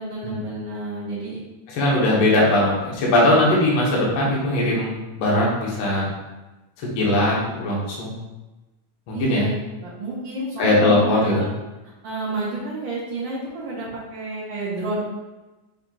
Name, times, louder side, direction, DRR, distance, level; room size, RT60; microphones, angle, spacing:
voice 1, 0.0-1.4 9.1-9.5 9.8-11.5 12.0-15.1, right 2 dB, 75° right, -9 dB, 1.1 m, -30 dB
voice 2, 1.7-6.1 6.9-8.1 9.1-9.5 10.6-11.4, left 1 dB, 60° left, -4 dB, 1.3 m, -20 dB
6.4 x 2.7 x 2.8 m, 1.1 s
omnidirectional pair, 3.5 m